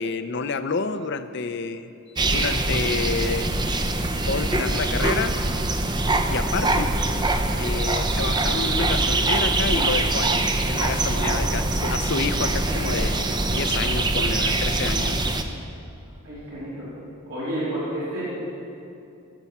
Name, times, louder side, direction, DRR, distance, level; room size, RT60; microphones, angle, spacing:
voice 1, 0.0-1.9 2.3-3.5 4.3-5.4 6.3-6.9 7.6-15.2, left 4 dB, 50° left, 11 dB, 0.6 m, -29 dB
sound 1, 2.2-15.4, right 2 dB, 20° right, 0.6 m, -23 dB
voice 2, 11.1-11.5 12.7-13.0 14.9-15.1 15.5-15.6 16.2-16.9 17.3-18.3, right 1 dB, 75° right, -10 dB, 3.5 m, -31 dB
18.0 x 7.0 x 7.3 m, 2.7 s
head